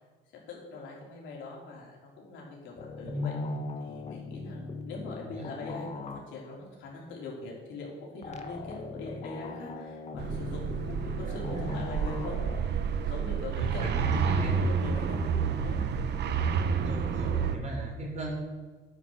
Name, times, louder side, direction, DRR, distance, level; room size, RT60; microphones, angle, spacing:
voice 1, 0.5-3.3 3.8-12.4 13.1-15.3 15.6-15.8, left 3 dB, 85° left, -2 dB, 3.9 m, -42 dB
sound 1, 2.8-6.6 8.2-12.6, left 4 dB, 35° left, 1.3 m, -41 dB
voice 2, 3.0-3.6 5.2-5.5 11.5-12.0 13.6-14.6 16.8-18.3, equal, 35° right, 0 dB, 3.9 m, -36 dB
sound 2, 10.2-17.6, right 6 dB, 60° right, 1.0 m, -29 dB
10.5 x 9.0 x 6.6 m, 1.4 s
cardioid pair, 120°, 19 cm